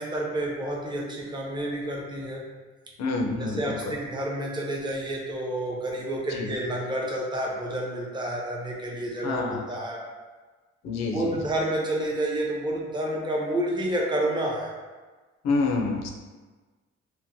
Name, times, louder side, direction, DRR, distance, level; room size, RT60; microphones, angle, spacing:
voice 1, 0.0-2.5 3.4-10.0 11.1-14.7, right 1 dB, 15° right, -3 dB, 0.5 m, -29 dB
voice 2, 3.0-3.9 6.3-6.5 9.2-9.6 10.8-11.3 15.4-16.1, left 3 dB, 65° left, 2 dB, 0.5 m, -27 dB
2.9 x 2.1 x 2.6 m, 1.3 s
cardioid pair, 100°, 29 cm